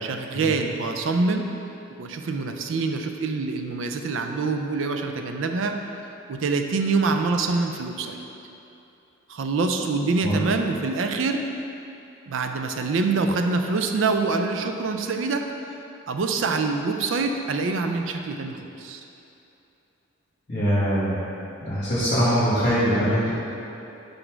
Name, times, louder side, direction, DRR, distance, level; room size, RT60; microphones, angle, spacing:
voice 1, 0.0-1.5 2.0-5.8 6.3-8.2 9.3-11.5 12.3-15.5 16.1-19.0, right 3 dB, 70° right, 5 dB, 0.4 m, -25 dB
voice 2, 20.5-21.2 21.6-23.3, equal, 40° left, -9 dB, 1.1 m, -22 dB
5.2 x 4.0 x 4.4 m, 2.9 s
head